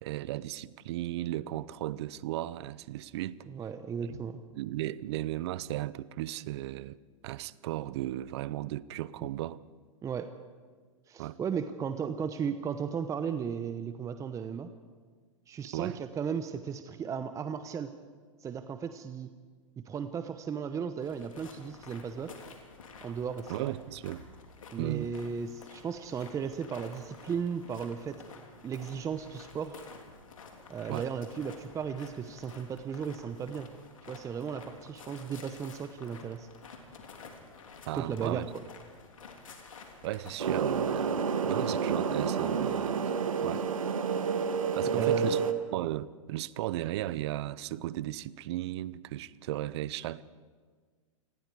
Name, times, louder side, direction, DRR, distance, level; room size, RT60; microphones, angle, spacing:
voice 1, 0.0-3.4 4.0-4.2 4.5-7.0 7.2-9.6 11.2-11.4 15.7-16.0 23.5-24.2 24.8-25.1 30.9-31.1 37.9-38.5 40.0-43.0 43.4-43.7 44.7-45.4 45.7-50.2, right 15 dB, 55° right, 0.7 m, -35 dB
voice 2, 3.5-4.4 9.2-9.3 10.0-10.3 11.1-14.7 15.5-17.9 18.4-19.3 19.8-22.4 23.0-23.7 24.7-28.2 28.6-29.8 30.7-33.7 34.1-36.5 37.9-38.6 44.8-45.4, right 7 dB, 20° right, 0.8 m, -35 dB
sound 1, 21.0-40.3, left 4 dB, 80° left, 3.4 m, -51 dB
sound 2, 40.4-45.5, right 6 dB, 85° right, 1.7 m, -29 dB
27.5 x 20.5 x 4.8 m
hypercardioid pair, 110°, 17 cm